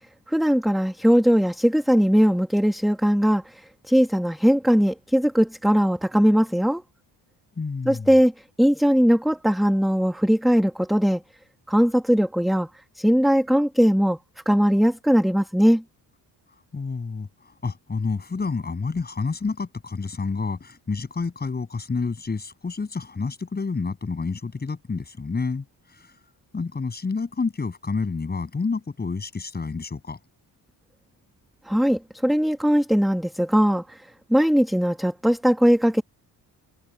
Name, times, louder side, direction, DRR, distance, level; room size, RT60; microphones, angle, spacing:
voice 1, 0.3-6.8 7.8-8.3 8.6-11.2 11.7-12.7 13.0-14.2 14.4-15.8 31.7-34.0 34.3-36.0, equal, ahead, 1.2 m, -20 dB
voice 2, 7.6-8.1 16.7-17.3 17.6-26.2 26.5-30.2, left 4 dB, 25° left, 6.8 m, -29 dB
wide cardioid pair, 165°, 39 cm